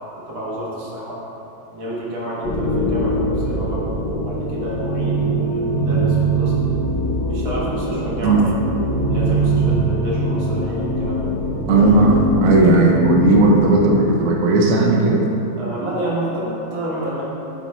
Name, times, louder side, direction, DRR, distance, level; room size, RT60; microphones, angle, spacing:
voice 1, 0.3-1.2 1.7-6.5 7.3-8.4 9.0-11.4 15.5-17.2, right 1 dB, 80° right, -6 dB, 2.2 m, -29 dB
sound 1, 2.4-14.4, right 1 dB, 55° left, 1.4 m, -22 dB
voice 2, 11.7-15.3, right 2 dB, 65° right, 0 dB, 0.9 m, -15 dB
8.1 x 3.5 x 4.2 m, 3.0 s
omnidirectional pair, 2.2 m